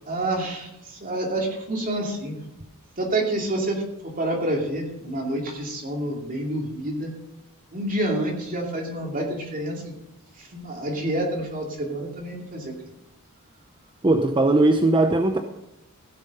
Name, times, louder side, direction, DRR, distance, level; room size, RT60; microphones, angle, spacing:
voice 1, 0.1-2.4 3.0-7.1 7.7-9.9 10.3-12.7, right 1 dB, 40° right, 0 dB, 2.5 m, -28 dB
voice 2, 14.0-15.4, right 2 dB, 20° right, 5 dB, 0.7 m, -19 dB
16.0 x 7.6 x 5.4 m, 0.84 s
head